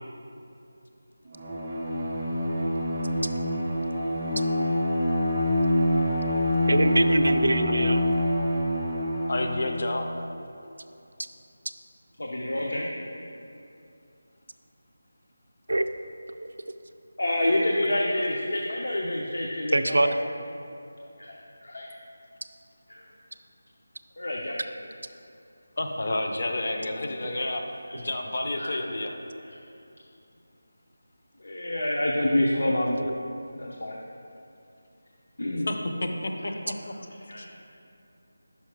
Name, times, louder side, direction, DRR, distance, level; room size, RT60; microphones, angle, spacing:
Bowed string instrument, 1.3-9.8, left 1 dB, 15° right, 0.5 m, -26 dB
voice 1, 6.7-8.0 15.7-15.9 19.7-20.1 33.0-33.1, right 2 dB, 70° right, 9 dB, 0.3 m, -23 dB
voice 2, 9.3-10.1 25.8-27.7 27.9-29.2 35.7-36.9 37.4-37.5, left 2 dB, 35° left, 3 dB, 0.5 m, -30 dB
voice 3, 12.2-12.9 17.2-20.1 21.2-21.9 22.9-23.1 24.2-24.6 27.9-28.0 28.6-28.7 29.4-29.6 31.4-33.0 33.2-34.0 35.4-35.7 36.4-36.5 37.0-37.5, left 1 dB, 80° left, -2 dB, 0.7 m, -28 dB
5.7 x 4.7 x 4.5 m, 2.7 s
figure-of-eight pair, 180°, 0 cm